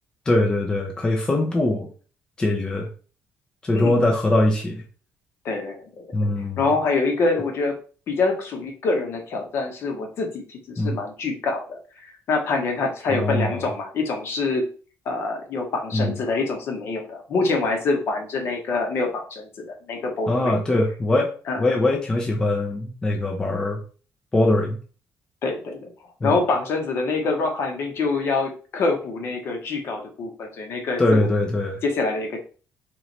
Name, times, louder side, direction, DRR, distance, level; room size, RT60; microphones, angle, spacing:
voice 1, 0.3-1.9 2.4-2.9 3.6-4.8 6.1-6.6 10.8-11.0 13.1-13.7 15.9-16.2 20.3-21.3 21.6-23.8 24.3-24.8 26.2-26.4 31.0-31.8, left 1 dB, 15° left, 0 dB, 0.5 m, -22 dB
voice 2, 5.4-6.1 6.6-7.7 8.1-14.7 15.0-19.5 19.9-20.6 21.5-21.7 25.4-25.9 26.2-31.3 31.8-32.4, left 3 dB, 50° left, 3 dB, 0.9 m, -25 dB
3.1 x 3.0 x 4.0 m, 0.39 s
cardioid pair, 175°, 6 cm